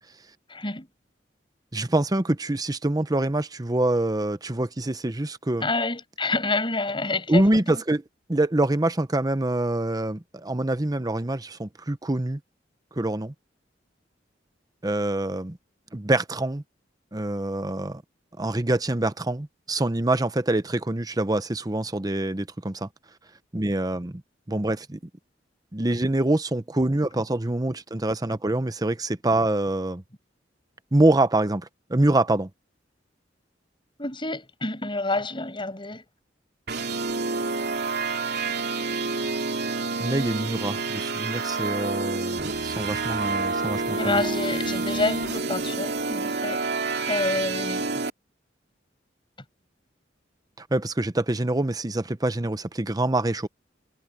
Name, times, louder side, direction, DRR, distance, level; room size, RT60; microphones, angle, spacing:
voice 1, 0.5-0.9 5.6-7.8 34.0-36.0 43.9-46.6 47.1-47.9, left 2 dB, 25° left, 7.9 m, -28 dB
voice 2, 1.7-5.7 7.3-8.0 8.3-12.4 13.0-13.3 14.8-15.6 15.9-16.6 17.1-18.0 18.4-22.9 23.5-24.1 24.5-25.0 25.7-30.0 30.9-32.5 40.0-44.2 50.6-53.5, right 1 dB, 20° right, 0.9 m, -25 dB
sound 1, 36.7-48.1, right 3 dB, 65° right, 3.0 m, -28 dB
head